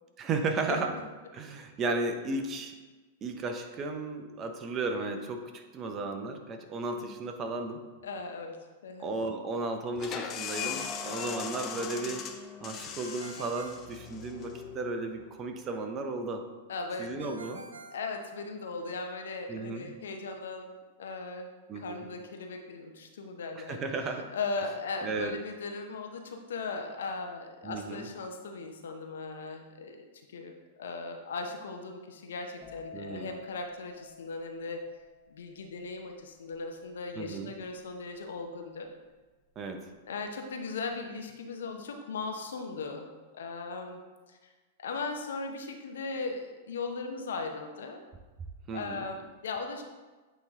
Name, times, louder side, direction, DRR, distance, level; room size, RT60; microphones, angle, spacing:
voice 1, 0.2-0.9 1.3-2.7 3.2-7.8 9.0-12.3 12.6-16.4 17.0-17.6 19.5-19.9 21.7-22.1 23.6-24.3 25.0-25.3 27.6-28.0 32.9-33.3 37.2-37.5 39.6-39.9 48.7-49.0, right 3 dB, 30° right, 5 dB, 0.7 m, -34 dB
voice 2, 8.0-8.6 8.8-9.1 16.7-17.1 17.9-20.7 21.0-21.5 21.7-23.8 24.3-30.1 30.3-34.8 35.3-38.9 40.1-43.1 43.3-44.0 44.3-44.4 44.8-48.0 48.7-49.8, left 3 dB, 75° left, 4 dB, 0.8 m, -38 dB
sound 1, 10.0-15.4, left 7 dB, 35° left, 0.6 m, -39 dB
Ringtone, 13.0-14.7 17.2-18.9, right 3 dB, 85° right, 0.5 m, -49 dB
sound 2, 32.6-40.2 40.5-40.9, left 5 dB, 5° left, 1.2 m, -52 dB
8.2 x 3.1 x 3.7 m, 1.3 s
hypercardioid pair, 105°, 0 cm